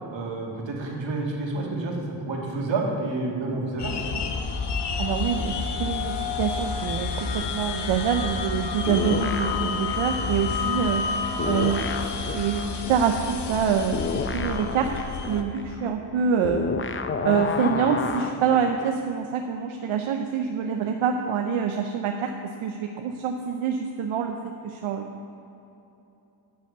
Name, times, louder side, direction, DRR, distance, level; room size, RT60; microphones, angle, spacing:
voice 1, 0.1-4.2, right 2 dB, 65° right, -1 dB, 2.2 m, -29 dB
sound 1, 3.8-15.4, left 5 dB, 55° left, 1.0 m, -30 dB
voice 2, 5.0-11.1 11.4-11.9 12.3-14.9 15.3-16.7 17.2-25.1, right 7 dB, 90° right, 4 dB, 0.7 m, -26 dB
sound 2, 8.9-11.1 11.4-19.0, left 5 dB, 25° left, 0.6 m, -31 dB
9.1 x 6.8 x 6.6 m, 2.9 s
cardioid pair, 65°, 47 cm